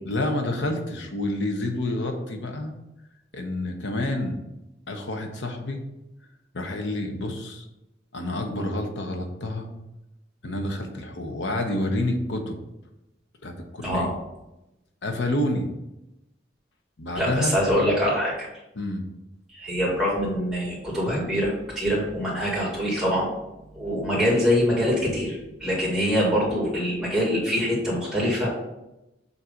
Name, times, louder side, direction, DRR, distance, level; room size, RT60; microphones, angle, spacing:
voice 1, 0.0-2.7 3.3-4.4 4.9-5.8 6.5-7.6 8.1-9.7 10.4-12.6 13.4-14.1 15.0-15.7 17.0-17.5 18.8-19.0 25.9-26.1, left 1 dB, 85° left, 4 dB, 0.9 m, -28 dB
voice 2, 17.2-18.5 19.5-23.3 23.7-28.5, equal, 5° right, -6 dB, 1.9 m, -24 dB
7.2 x 2.7 x 5.1 m, 0.93 s
head